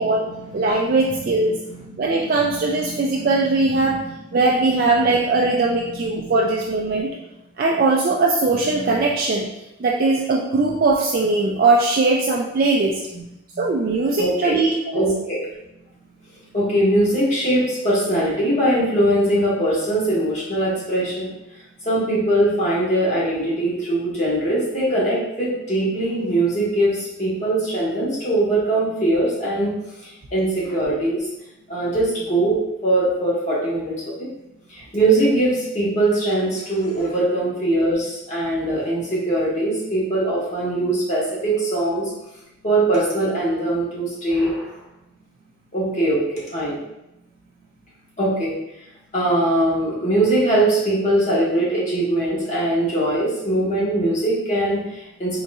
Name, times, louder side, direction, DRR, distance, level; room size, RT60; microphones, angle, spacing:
voice 1, 0.0-4.4 4.9-6.5 6.9-7.1 13.1-13.2 13.5-13.7 14.2-14.5 14.9-15.4 16.4-21.3 21.8-29.7 30.0-31.3 31.7-34.3 34.7-42.1 42.6-44.8 45.7-46.8 48.2-48.5 49.1-55.4, right 1 dB, 35° left, -7 dB, 1.3 m, -22 dB
voice 2, 0.5-1.6 2.0-4.0 4.3-7.1 7.6-9.5 9.8-13.0 13.6-15.0, right 3 dB, 45° right, -1 dB, 0.3 m, -20 dB
4.0 x 3.8 x 2.3 m, 0.88 s
head